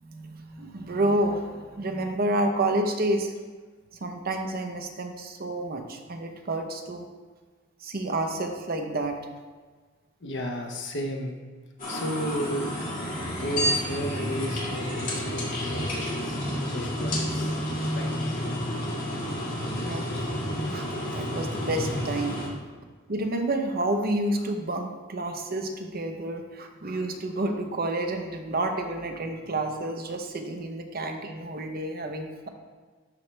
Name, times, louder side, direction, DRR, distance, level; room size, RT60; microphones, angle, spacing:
voice 1, 0.0-3.3 4.0-7.1 7.8-9.2 19.7-20.2 20.7-20.8 21.1-22.4 23.1-32.5, right 1 dB, 50° right, 4 dB, 0.8 m, -29 dB
voice 2, 10.2-11.4 11.9-12.7 13.3-16.4 16.7-17.6 17.9-18.1, equal, 65° left, 3 dB, 0.9 m, -33 dB
sound 1, 11.8-22.5, equal, 45° left, 2.2 m, -30 dB
12.0 x 4.4 x 3.3 m, 1.4 s
head